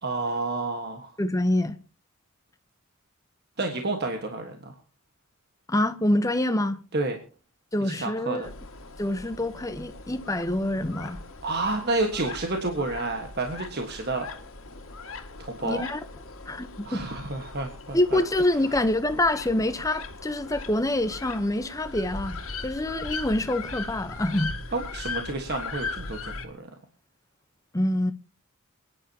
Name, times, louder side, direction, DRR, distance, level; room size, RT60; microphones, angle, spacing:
voice 1, 0.0-1.1 3.6-4.7 6.9-7.2 7.8-8.5 11.4-14.3 15.4-15.8 16.8-18.2 24.7-26.7, right 2 dB, 50° right, 1.5 m, -30 dB
voice 2, 1.2-1.8 5.7-6.8 7.7-8.5 9.0-11.2 15.6-16.0 16.5-17.0 17.9-22.4 22.6-24.5 27.7-28.1, left 1 dB, 15° left, 0.9 m, -26 dB
sound 1, 8.4-26.5, left 3 dB, 80° left, 2.0 m, -39 dB
28.0 x 10.0 x 2.9 m
head